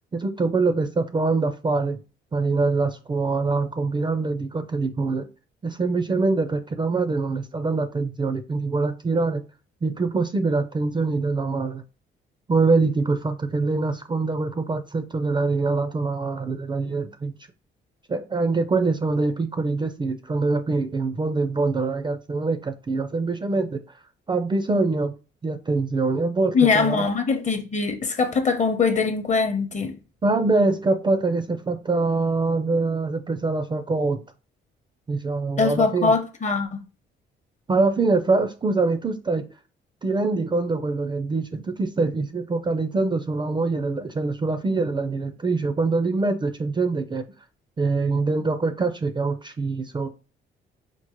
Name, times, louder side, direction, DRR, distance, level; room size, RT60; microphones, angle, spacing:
voice 1, 0.1-2.0 2.3-5.3 5.6-9.4 9.8-11.8 12.5-17.3 18.1-23.8 24.3-25.1 25.4-27.0 30.2-34.2 35.1-36.1 37.7-39.5 40.0-47.3 47.8-50.1, right 3 dB, 25° right, 0.4 m, -24 dB
voice 2, 26.5-30.0 35.6-36.8, left 4 dB, 35° left, 0.7 m, -22 dB
4.5 x 2.0 x 2.9 m
cardioid pair, 90°, 20 cm